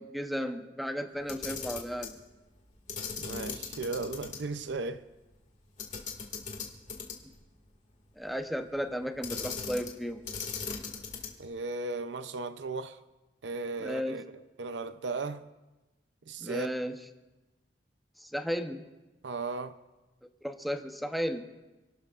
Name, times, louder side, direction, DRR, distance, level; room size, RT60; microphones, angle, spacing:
voice 1, 0.0-2.1 7.2-7.3 8.2-10.3 13.8-14.2 16.4-17.0 18.2-18.9 20.4-21.4, equal, ahead, 0.8 m, -34 dB
Camera, 1.2-2.2 2.9-4.4 4.7-4.8 5.8-7.4 9.2-10.0 10.2-11.5, left 5 dB, 45° left, 2.0 m, -38 dB
voice 2, 3.2-5.0 11.4-13.0 13.4-15.5 16.3-16.7 19.2-19.8, right 3 dB, 70° right, 0.6 m, -36 dB
29.5 x 12.0 x 2.5 m
head